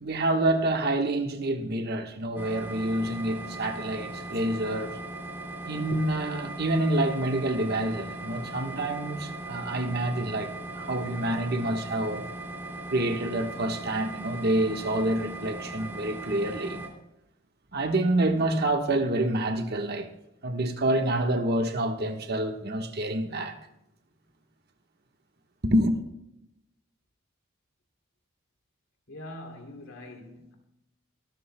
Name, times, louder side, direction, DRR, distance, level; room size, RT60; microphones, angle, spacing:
voice 1, 0.0-4.9 5.6-10.5 10.8-12.2 12.9-16.8 17.7-20.1 20.4-23.6 25.6-26.0, right 1 dB, 50° right, 1.4 m, -27 dB
sound 1, 2.4-16.9, right 1 dB, 10° right, 3.0 m, -39 dB
voice 2, 29.1-30.5, left 1 dB, 70° left, 3.0 m, -43 dB
23.0 x 13.0 x 2.3 m
head